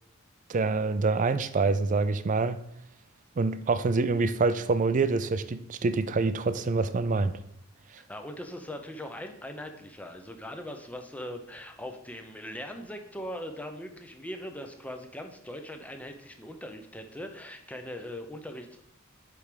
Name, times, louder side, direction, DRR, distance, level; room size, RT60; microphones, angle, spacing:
voice 1, 0.5-2.6 3.4-7.3, right 3 dB, 40° right, 0.4 m, -26 dB
voice 2, 8.1-18.9, left 1 dB, 5° left, 0.6 m, -40 dB
7.9 x 3.4 x 5.1 m
head